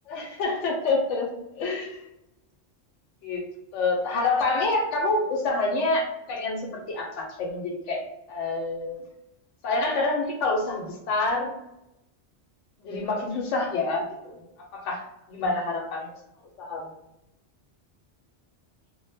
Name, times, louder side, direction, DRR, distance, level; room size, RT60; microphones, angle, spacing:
voice 1, 0.1-2.0 3.2-9.0 9.6-11.6 12.8-14.1 14.7-15.0 15.3-16.1 16.6-16.9, left 3 dB, 90° left, 1 dB, 0.9 m, -27 dB
2.1 x 2.1 x 3.3 m, 0.88 s
omnidirectional pair, 1.2 m